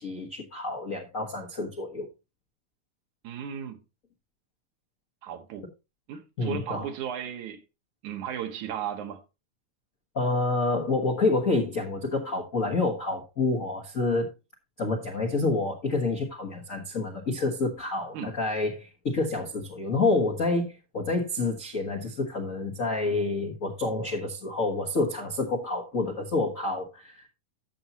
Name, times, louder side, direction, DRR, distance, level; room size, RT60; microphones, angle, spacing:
voice 1, 0.0-2.1 6.4-6.9 10.1-14.3 14.8-27.3, left 3 dB, 60° left, 0.8 m, -28 dB
voice 2, 3.2-3.8 5.2-5.7 6.1-7.6 8.0-9.2 18.1-18.3, right 9 dB, 70° right, 2.5 m, -35 dB
13.5 x 7.0 x 2.9 m
omnidirectional pair, 3.7 m